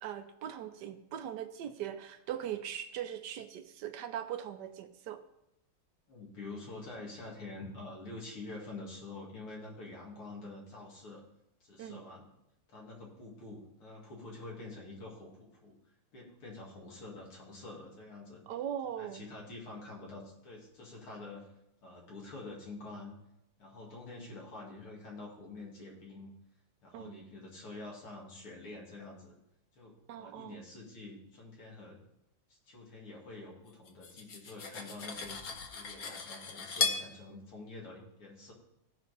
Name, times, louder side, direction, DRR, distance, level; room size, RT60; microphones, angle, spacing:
voice 1, 0.0-5.2 11.8-12.0 18.5-19.2 26.9-27.2 30.1-30.6, right 10 dB, 75° right, 9 dB, 1.0 m, -40 dB
voice 2, 6.1-11.2 11.6-12.3 12.7-15.8 16.1-18.4 19.0-21.5 21.8-23.2 23.6-26.3 26.8-29.4 29.7-32.0 32.5-35.4 35.6-38.5, left 2 dB, 85° left, -3 dB, 3.1 m, -47 dB
Cutlery silverware, 33.9-37.1, left 5 dB, 55° left, 1.2 m, -36 dB
15.5 x 5.2 x 4.1 m, 0.83 s
omnidirectional pair, 2.3 m